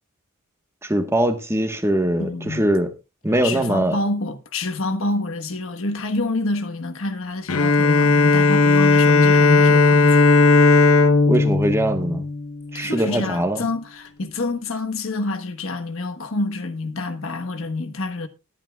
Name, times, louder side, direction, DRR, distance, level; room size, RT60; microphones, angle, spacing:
voice 1, 0.8-2.9 3.2-3.9 11.3-12.2 12.7-13.6, right 1 dB, 10° right, 1.3 m, -21 dB
voice 2, 2.2-2.6 3.4-10.2 12.7-18.3, left 2 dB, 70° left, 1.3 m, -27 dB
Bowed string instrument, 7.5-13.0, left 3 dB, 90° left, 1.0 m, -16 dB
20.5 x 9.0 x 2.3 m
head